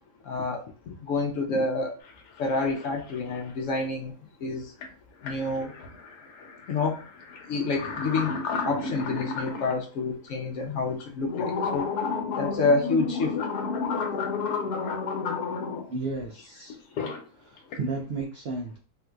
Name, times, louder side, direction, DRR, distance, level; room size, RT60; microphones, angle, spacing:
voice 1, 0.3-2.0 2.4-4.1 4.4-4.7 5.2-5.7 6.7-7.0 7.5-8.4 8.6-11.9 12.4-13.4, left 3 dB, 70° left, 3 dB, 0.8 m, -28 dB
sound 1, 2.0-2.1 2.4-3.2 4.8-4.9 5.2-9.7 10.3-10.4 11.0-15.9 16.7-17.2 17.6-17.9, left 4 dB, 90° left, 1.2 m, -31 dB
voice 2, 15.9-16.8 17.4-18.8, right 3 dB, 75° right, 0 dB, 0.5 m, -33 dB
3.6 x 2.7 x 2.3 m, 0.38 s
omnidirectional pair, 1.6 m